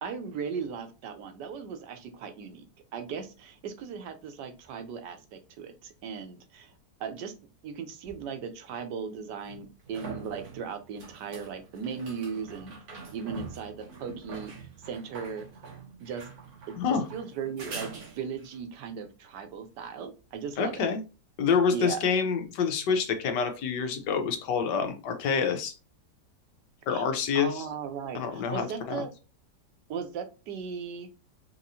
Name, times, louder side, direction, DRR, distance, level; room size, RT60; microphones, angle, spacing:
voice 1, 0.0-2.7 2.9-6.7 7.0-7.3 7.6-12.8 13.1-15.7 16.0-16.2 16.7-20.9 21.7-22.1 26.9-27.1 27.3-29.1 29.9-31.1, right 6 dB, 85° right, 7 dB, 1.4 m, -37 dB
sound 1, 8.0-8.1 9.4-18.6 22.0-22.1, right 4 dB, 60° right, 1.6 m, -44 dB
voice 2, 16.8-17.1 20.6-21.0 21.4-25.7 26.9-27.6 28.1-29.0, left 6 dB, 85° left, 6 dB, 1.5 m, -27 dB
4.6 x 3.0 x 2.6 m, 0.31 s
omnidirectional pair, 1.8 m